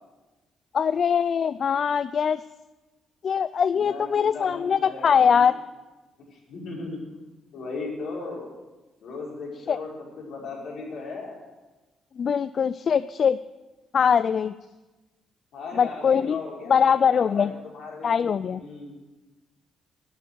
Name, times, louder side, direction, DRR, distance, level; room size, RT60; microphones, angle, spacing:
voice 1, 0.7-2.4 3.2-5.5 9.7-9.8 12.2-13.4 13.9-14.5 15.8-16.4 16.7-17.5 18.0-18.6, left 7 dB, 50° left, 15 dB, 0.3 m, -22 dB
voice 2, 3.7-5.5 6.3-7.0 7.5-8.5 9.0-9.9 10.2-11.4 15.5-18.2 18.5-18.9, left 3 dB, 75° left, -4 dB, 5.6 m, -37 dB
12.0 x 9.5 x 8.2 m, 1.2 s
cardioid pair, 90°, 0 cm